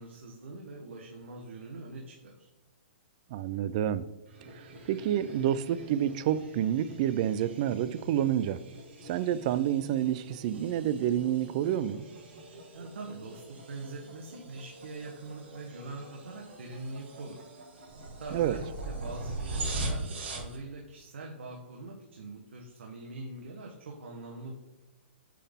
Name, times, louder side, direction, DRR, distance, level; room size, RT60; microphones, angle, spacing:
voice 1, 0.0-2.5 12.7-17.4 18.2-24.5, right 2 dB, 80° right, 0 dB, 1.2 m, -43 dB
voice 2, 3.3-4.1 4.9-8.6 9.0-12.1 18.3-18.6, right 10 dB, 35° right, 15 dB, 0.3 m, -28 dB
sound 1, 4.3-20.6, right 2 dB, 65° right, 2.2 m, -42 dB
8.3 x 3.9 x 3.6 m, 0.95 s
hypercardioid pair, 165°, 7 cm